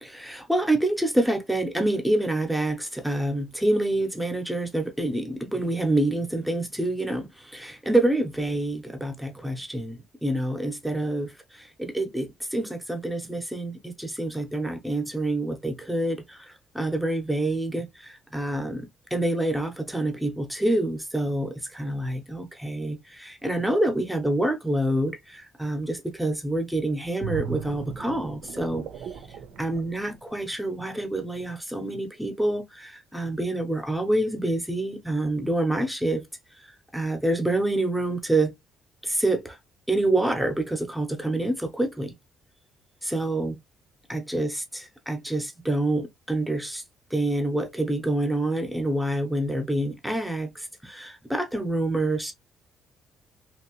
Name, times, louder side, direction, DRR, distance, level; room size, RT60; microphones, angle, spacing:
voice 1, 0.0-18.9 19.1-28.9 29.6-36.2 36.9-38.5 39.0-39.6 39.9-42.1 43.0-43.6 44.1-46.8 47.1-52.3, right 1 dB, 5° right, 0.7 m, -27 dB
sound 1, 27.2-30.8 31.2-31.4, right 7 dB, 70° right, 0.5 m, -37 dB
3.0 x 2.8 x 3.0 m
cardioid pair, 145°, 0 cm